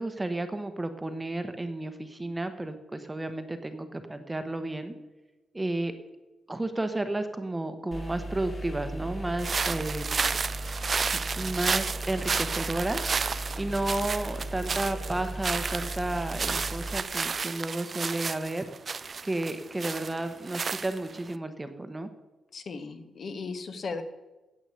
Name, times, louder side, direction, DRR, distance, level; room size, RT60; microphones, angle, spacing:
voice 1, 0.0-4.9 5.5-5.9 6.5-10.1 11.4-13.1 13.6-18.7 19.2-22.1, right 2 dB, 15° right, 9 dB, 0.9 m, -32 dB
sound 1, 7.9-17.0, right 1 dB, 35° left, 2.1 m, -37 dB
sound 2, 9.4-21.3, right 5 dB, 40° right, 0.3 m, -32 dB
voice 2, 22.5-24.0, left 4 dB, 55° left, 9 dB, 1.1 m, -36 dB
9.4 x 8.1 x 8.1 m, 1.1 s
cardioid pair, 120°, 0 cm